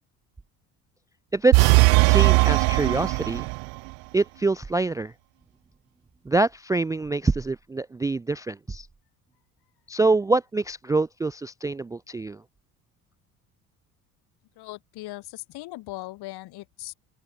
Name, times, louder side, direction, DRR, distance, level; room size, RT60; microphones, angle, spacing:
voice 1, 1.3-1.7 2.0-3.5 4.1-5.1 6.3-8.9 9.9-12.4, right 3 dB, 10° right, 0.4 m, -25 dB
sound 1, 1.5-3.8, right 31 dB, 60° right, 0.7 m, -18 dB
voice 2, 14.6-16.9, left 18 dB, 60° left, 2.9 m, -39 dB
open air
hypercardioid pair, 60°, 44 cm